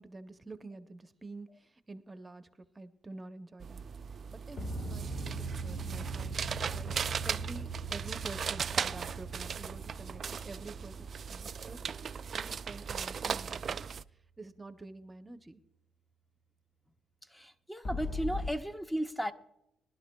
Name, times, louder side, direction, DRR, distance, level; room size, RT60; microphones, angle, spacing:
voice 1, 0.0-3.8 4.3-6.4 6.7-6.9 7.2-11.8 12.3-13.9 14.4-15.6, right 2 dB, 20° right, 0.7 m, -48 dB
sound 1, 3.6-14.0, right 6 dB, 50° right, 0.3 m, -38 dB
sound 2, 4.6-12.9 17.8-18.5, right 2 dB, 50° left, 1.5 m, -40 dB
voice 2, 17.3-19.3, equal, 10° left, 0.7 m, -35 dB
21.5 x 11.5 x 2.2 m
cardioid pair, 90°, 0 cm